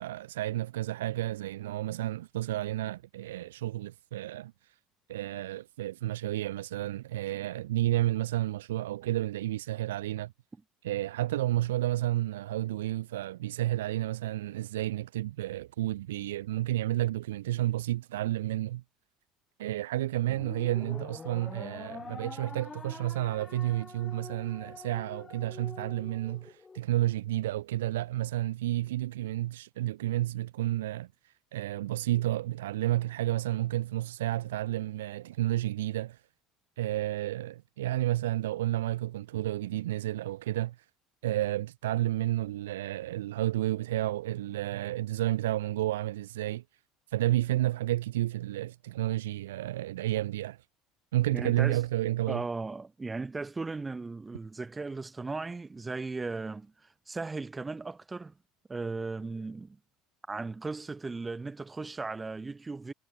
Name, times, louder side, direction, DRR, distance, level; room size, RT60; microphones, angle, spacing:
voice 1, 0.0-4.7 5.1-10.3 10.8-18.8 19.6-36.2 36.8-40.8 41.2-46.6 47.1-50.6 51.1-52.4, right 14 dB, 75° right, 1.0 m, -31 dB
sound 1, 20.3-26.8, left 4 dB, 25° left, 1.1 m, -45 dB
voice 2, 51.3-51.8 52.3-56.7 57.1-58.3 58.7-59.8 60.3-62.9, right 3 dB, 20° right, 0.7 m, -36 dB
figure-of-eight pair, 65°, 0 cm